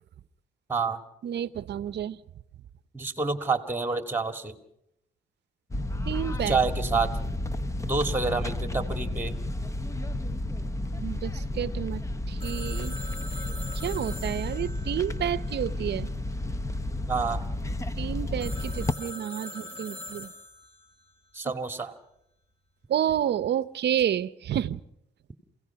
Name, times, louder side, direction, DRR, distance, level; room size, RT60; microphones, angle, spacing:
voice 1, 0.7-1.0 2.9-4.6 6.5-7.1 7.8-9.4 17.1-17.4 21.3-21.9, right 4 dB, 10° right, 8 dB, 2.0 m, -28 dB
voice 2, 1.2-2.2 6.1-6.6 11.0-13.0 13.7-16.1 18.0-20.3 22.9-24.8, right 10 dB, 60° right, 17 dB, 0.8 m, -30 dB
sound 1, 5.7-19.0, left 1 dB, 15° left, 1.0 m, -31 dB
Telephone, 12.4-16.0 18.4-20.9, left 1 dB, 30° left, 4.7 m, -43 dB
28.5 x 17.0 x 5.9 m, 0.78 s
cardioid pair, 90°, 20 cm